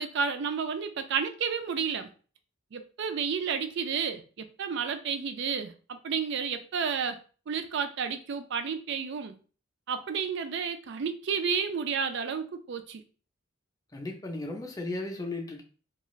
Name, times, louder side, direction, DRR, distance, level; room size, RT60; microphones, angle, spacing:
voice 1, 0.0-2.1 2.7-7.2 7.5-9.4 9.9-13.0, right 6 dB, 60° right, 8 dB, 0.4 m, -31 dB
voice 2, 13.9-15.6, left 2 dB, 15° left, 1 dB, 0.5 m, -35 dB
2.4 x 2.3 x 3.0 m, 0.39 s
head